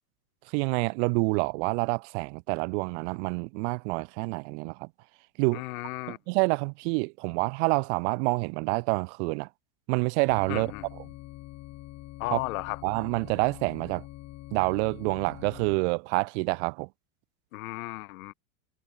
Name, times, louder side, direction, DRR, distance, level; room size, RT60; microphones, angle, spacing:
voice 1, 0.5-4.9 5.4-5.6 6.1-9.5 9.9-10.7 12.3-12.4 12.8-14.0 14.5-16.9, right 33 dB, 50° right, 0.9 m, -27 dB
voice 2, 5.5-6.2 10.5-10.8 12.2-12.8 17.5-18.3, left 20 dB, 70° left, 1.0 m, -34 dB
sound 1, 10.3-15.8, left 16 dB, 35° left, 2.7 m, -45 dB
supercardioid pair, 140°, 44 cm